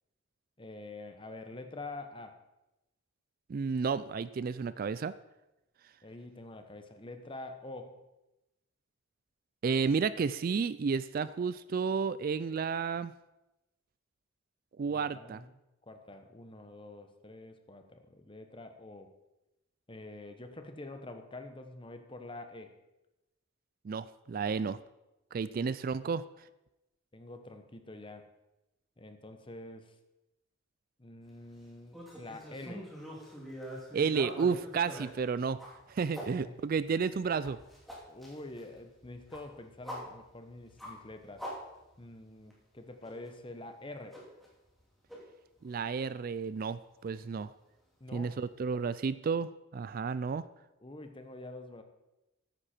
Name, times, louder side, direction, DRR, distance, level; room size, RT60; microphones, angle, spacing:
voice 1, 0.6-2.4 6.0-8.1 14.9-15.5 15.9-19.1 19.9-22.7 25.6-25.7 27.1-28.3 29.0-29.9 31.0-32.9 36.3-36.6 38.1-41.5 42.0-44.2 48.0-48.3 50.8-51.8, left 2 dB, 25° left, 7 dB, 1.0 m, -46 dB
voice 2, 3.5-5.1 9.6-13.1 14.8-15.4 23.8-24.8 25.3-26.2 33.9-35.6 35.9-37.6 45.6-47.5 48.1-50.4, right 5 dB, 45° right, 16 dB, 0.3 m, -32 dB
sound 1, 31.9-36.3 36.8-42.2 42.5-42.6 43.0-43.3 44.1-44.8 45.1-45.2 45.7-45.8 47.1-47.2, equal, ahead, 2.8 m, -45 dB
14.0 x 9.8 x 4.4 m, 0.96 s
head